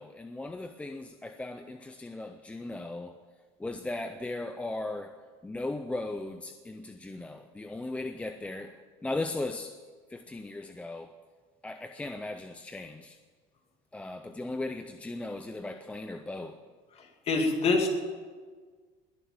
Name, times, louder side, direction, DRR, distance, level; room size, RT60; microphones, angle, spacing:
voice 1, 0.0-3.1 3.6-5.1 5.4-8.7 9.0-9.7 10.1-11.1 11.6-13.2 13.9-16.6, left 2 dB, 5° left, 0.5 m, -37 dB
voice 2, 17.3-17.9, left 3 dB, 30° left, 2.4 m, -24 dB
21.0 x 7.2 x 9.4 m
cardioid pair, 160°, 21 cm